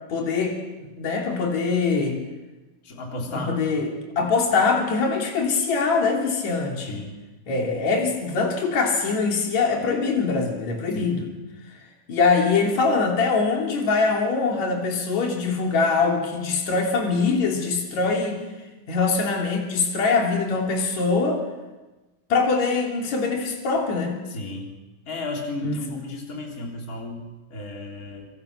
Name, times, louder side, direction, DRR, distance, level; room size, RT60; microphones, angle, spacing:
voice 1, 0.1-2.2 3.3-3.9 4.2-7.0 7.5-11.2 12.1-18.4 18.9-21.4 22.3-24.2 25.6-25.8, left 4 dB, 60° left, 0 dB, 4.4 m, -23 dB
voice 2, 2.8-3.6 6.9-7.2 10.9-11.3 24.3-24.8 25.1-28.3, left 2 dB, 25° left, 0 dB, 3.9 m, -34 dB
25.0 x 25.0 x 6.6 m, 1.1 s
omnidirectional pair, 3.7 m